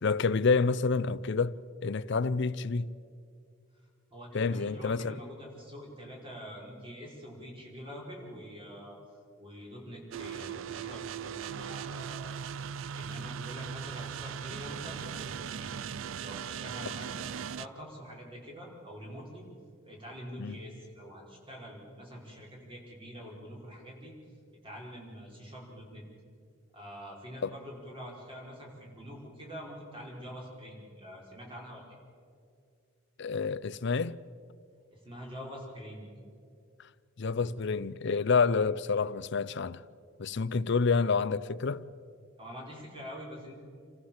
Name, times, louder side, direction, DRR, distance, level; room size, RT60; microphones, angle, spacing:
voice 1, 0.0-2.9 4.3-5.2 16.8-16.9 20.4-20.6 27.4-27.5 33.2-34.2 37.2-39.8 40.2-41.8, left 4 dB, 60° left, 0.6 m, -28 dB
voice 2, 4.1-9.0 9.4-12.5 12.9-15.8 16.2-19.4 19.8-24.1 24.6-26.0 26.7-32.0 34.9-36.1 42.4-43.6, equal, 25° right, 5.0 m, -45 dB
sound 1, 10.1-17.7, right 7 dB, 70° right, 0.4 m, -39 dB
28.0 x 15.0 x 7.3 m
head